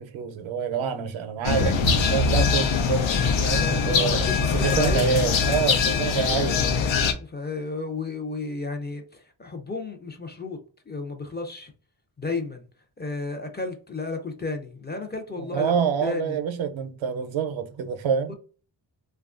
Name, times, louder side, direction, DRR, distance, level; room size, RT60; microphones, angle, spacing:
voice 1, 0.0-6.7 15.4-18.3, right 7 dB, 85° right, 0.6 m, -27 dB
sound 1, 1.4-7.1, left 5 dB, 80° left, 0.6 m, -22 dB
voice 2, 3.6-5.2 7.2-11.7 12.2-12.6 13.0-15.7 16.0-16.4 18.3-18.4, left 3 dB, 20° left, 0.5 m, -33 dB
2.9 x 2.3 x 2.4 m
cardioid pair, 90°, 46 cm